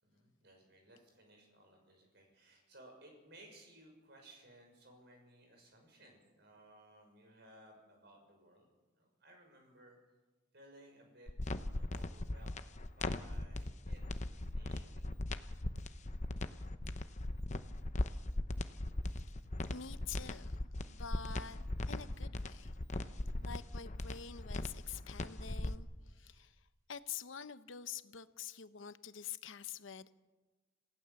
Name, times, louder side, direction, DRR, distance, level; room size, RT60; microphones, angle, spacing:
voice 1, 0.0-8.7 8.9-10.0 10.5-11.3 11.7-14.0 14.3-15.1 26.1-26.6, right 1 dB, 55° right, 2 dB, 6.4 m, -60 dB
sound 1, 11.3-25.8, left 1 dB, 35° left, 0.8 m, -39 dB
voice 2, 19.7-20.5 20.9-22.7 23.0-23.1 23.4-26.6 26.9-30.2, left 7 dB, 75° left, 13 dB, 0.8 m, -47 dB
27.0 x 16.0 x 7.1 m, 1.2 s
head